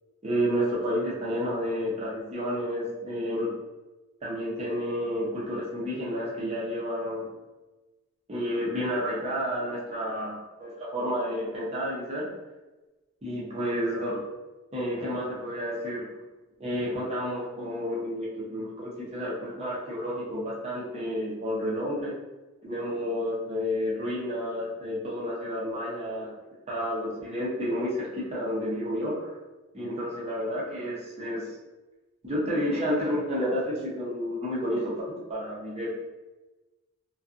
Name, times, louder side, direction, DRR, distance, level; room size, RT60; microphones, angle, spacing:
voice 1, 0.2-3.5 4.2-7.3 8.3-12.3 13.2-14.2 14.7-16.1 16.6-22.2 22.6-26.3 26.7-29.3 29.7-31.5 32.2-35.9, equal, 30° right, -6 dB, 0.6 m, -30 dB
2.5 x 2.3 x 2.5 m, 1.1 s
head